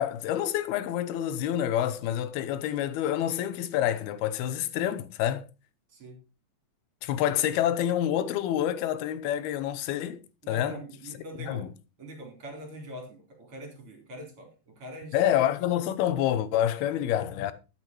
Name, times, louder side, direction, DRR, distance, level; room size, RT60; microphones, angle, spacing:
voice 1, 0.0-5.4 7.0-10.8 11.4-11.7 15.1-17.5, left 11 dB, 80° left, 2.8 m, -27 dB
voice 2, 10.4-11.7 12.0-15.2, equal, 35° right, 4.6 m, -43 dB
12.5 x 9.2 x 4.6 m
omnidirectional pair, 4.5 m